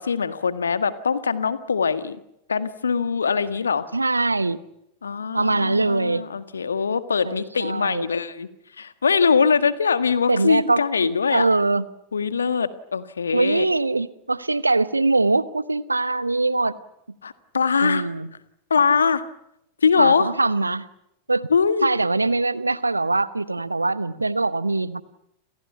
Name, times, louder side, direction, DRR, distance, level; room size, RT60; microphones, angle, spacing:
voice 1, 0.0-2.2 2.5-3.9 5.0-8.5 8.8-11.5 12.1-13.6 17.2-18.0 18.7-19.2 19.8-20.3 21.5-21.9, left 5 dB, 70° left, 12 dB, 1.7 m, -22 dB
voice 2, 3.9-4.6 5.3-6.2 7.2-8.1 10.3-11.9 13.3-16.8 17.8-18.3 19.9-20.9 21.3-21.5 21.8-25.0, right 3 dB, 80° right, 16 dB, 1.1 m, -22 dB
30.0 x 28.5 x 5.8 m, 0.79 s
figure-of-eight pair, 90°, 0 cm